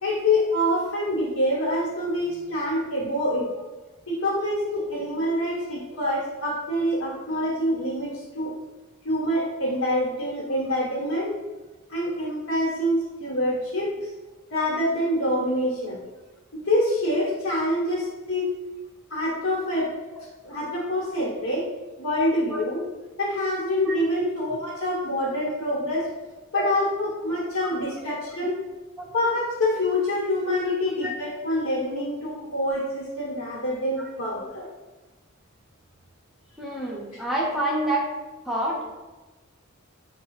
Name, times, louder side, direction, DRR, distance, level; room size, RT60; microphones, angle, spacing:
voice 1, 0.0-3.5 4.1-8.5 9.0-11.3 11.9-14.1 14.5-16.0 16.5-18.5 19.1-19.9 20.4-21.7 22.0-22.8 23.2-26.1 26.5-28.6 29.1-34.7, left 1 dB, 80° left, -5 dB, 1.2 m, -26 dB
voice 2, 23.8-24.3 26.0-26.1 26.5-26.6 29.0-29.1 31.0-31.1 32.4-32.5 34.4-34.5 36.6-38.0 38.4-38.9, right 1 dB, ahead, -4 dB, 0.5 m, -28 dB
5.3 x 2.3 x 3.2 m, 1.2 s
head